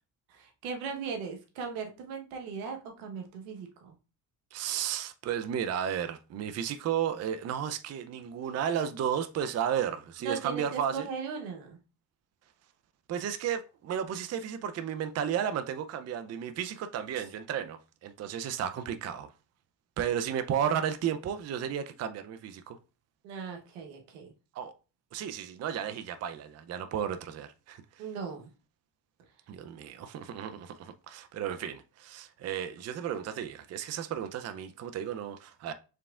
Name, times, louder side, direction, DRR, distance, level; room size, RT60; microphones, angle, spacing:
voice 1, 0.3-3.9 10.2-11.8 23.2-24.3 28.0-28.5, right 5 dB, 85° right, 1.1 m, -38 dB
voice 2, 4.5-11.1 13.1-19.3 20.0-22.8 24.5-24.7 25.1-28.1 29.5-35.7, right 9 dB, 35° right, 0.5 m, -33 dB
4.7 x 3.5 x 2.4 m
supercardioid pair, 70°, 46 cm